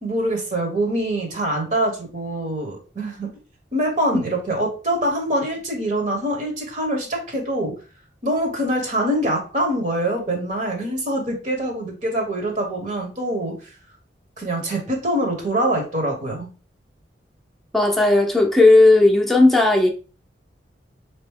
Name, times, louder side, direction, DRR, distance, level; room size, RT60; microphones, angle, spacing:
voice 1, 0.0-3.3 3.7-7.8 8.2-13.7 14.4-16.5, right 1 dB, 45° right, 1 dB, 1.2 m, -24 dB
voice 2, 17.7-19.9, left 2 dB, ahead, -1 dB, 0.8 m, -14 dB
3.9 x 3.0 x 3.5 m, 0.34 s
head